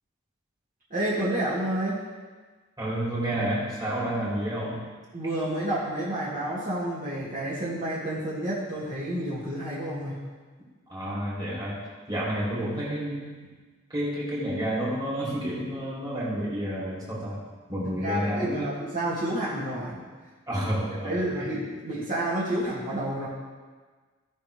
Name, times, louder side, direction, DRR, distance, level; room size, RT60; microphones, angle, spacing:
voice 1, 0.9-2.0 5.1-10.2 18.0-20.0 21.0-23.3, right 1 dB, 40° right, -10 dB, 2.5 m, -29 dB
voice 2, 2.8-4.8 10.9-11.8 12.1-13.5 13.9-17.4 17.7-18.7 20.5-21.5, right 1 dB, 20° right, -8 dB, 3.6 m, -30 dB
17.5 x 6.2 x 3.5 m, 1.4 s
head